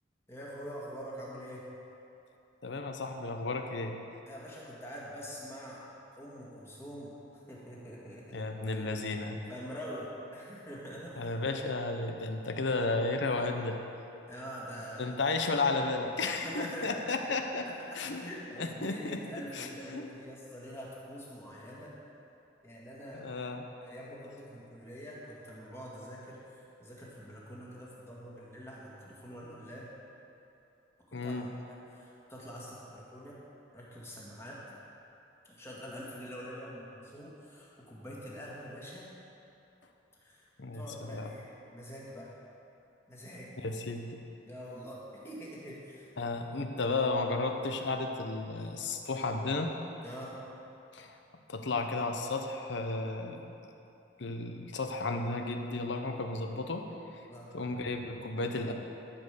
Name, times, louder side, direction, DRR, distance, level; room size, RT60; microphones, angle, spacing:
voice 1, 0.3-1.7 4.3-5.9 6.2-7.1 7.5-8.5 8.7-8.8 9.5-11.3 14.3-15.2 16.3-17.3 17.9-22.0 22.6-23.3 23.8-29.9 31.1-31.4 31.7-33.4 33.7-34.6 35.5-39.1 40.2-40.4 40.7-42.3 43.1-43.5 44.5-46.1 50.0-50.4 57.3-57.7, equal, 15° left, -6 dB, 2.0 m, -45 dB
voice 2, 2.6-4.0 8.3-9.4 11.2-13.8 15.0-17.7 17.9-18.2 18.6-19.2 19.5-20.1 23.1-23.7 31.1-31.5 40.6-41.3 43.6-44.2 46.2-49.8 50.9-51.1 51.5-53.5 54.2-56.9 57.5-58.7, left 3 dB, 65° left, 5 dB, 0.8 m, -33 dB
13.5 x 5.3 x 6.7 m, 2.9 s
head